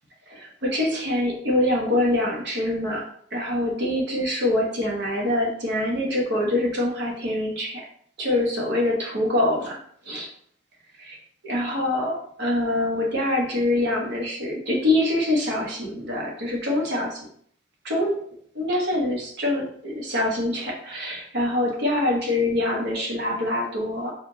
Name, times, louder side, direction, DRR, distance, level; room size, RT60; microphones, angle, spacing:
voice 1, 0.3-3.0 3.3-7.8 8.2-9.8 10.0-10.3 11.0-11.2 11.4-17.2 17.8-18.1 18.5-24.1, left 1 dB, 60° right, -2 dB, 1.2 m, -25 dB
4.7 x 3.4 x 2.8 m, 0.62 s
head